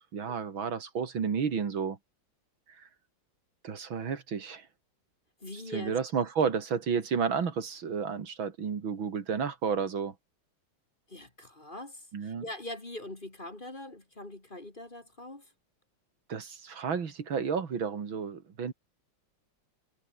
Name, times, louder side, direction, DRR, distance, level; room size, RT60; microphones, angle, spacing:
voice 1, 0.1-2.0 2.7-2.9 3.6-4.7 5.5-10.1 12.1-12.4 16.3-18.7, right 6 dB, 75° right, 3.0 m, -31 dB
voice 2, 5.4-5.9 11.1-15.5, left 1 dB, 25° left, 2.7 m, -42 dB
omnidirectional pair, 2.2 m